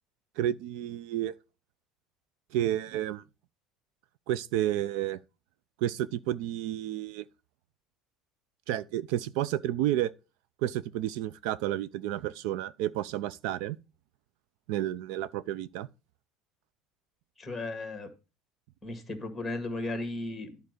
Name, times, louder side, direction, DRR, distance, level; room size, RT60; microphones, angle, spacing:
voice 1, 0.4-1.3 2.5-3.2 4.3-5.2 5.8-7.2 8.7-10.1 10.6-13.8 14.7-15.9, right 12 dB, 70° right, 0.4 m, -31 dB
voice 2, 17.4-18.1 18.8-20.6, left 2 dB, 5° left, 1.7 m, -35 dB
11.0 x 4.0 x 6.6 m
cardioid pair, 175°, 0 cm